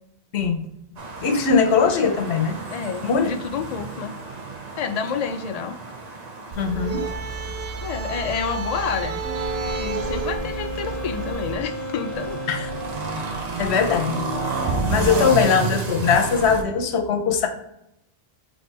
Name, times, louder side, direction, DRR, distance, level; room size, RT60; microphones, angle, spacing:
sound 1, 1.0-16.6, right 3 dB, 45° right, 0.8 m, -31 dB
voice 1, 1.2-2.6 3.0-3.3 6.6-7.1 12.5-12.6 13.6-14.2 14.9-17.5, left 6 dB, 85° left, 6 dB, 1.0 m, -20 dB
voice 2, 2.7-4.1 4.8-5.8 7.8-9.2 9.7-12.4 13.1-13.4 15.2-15.8, left 6 dB, 55° left, 8 dB, 0.5 m, -29 dB
sound 2, 6.5-11.6, right 4 dB, 75° right, 0.9 m, -31 dB
Wind instrument woodwind instrument, 9.2-13.3, left 1 dB, 5° right, 1.5 m, -33 dB
4.2 x 3.4 x 3.3 m, 0.81 s
omnidirectional pair, 1.1 m